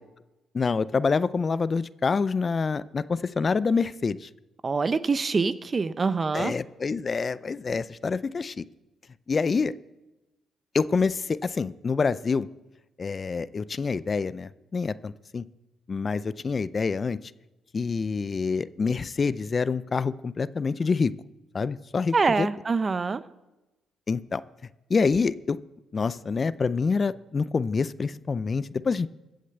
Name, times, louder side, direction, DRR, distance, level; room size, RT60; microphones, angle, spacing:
voice 1, 0.5-4.3 6.3-8.5 9.3-9.7 10.7-12.5 13.0-15.4 15.9-17.2 17.7-21.1 21.5-22.5 24.1-24.4 24.9-25.6 25.9-29.1, left 4 dB, 35° left, 17 dB, 0.4 m, -26 dB
voice 2, 4.6-6.6 22.1-23.2, right 4 dB, 35° right, 15 dB, 0.6 m, -25 dB
14.5 x 6.5 x 8.0 m, 1.0 s
cardioid pair, 90°, 0 cm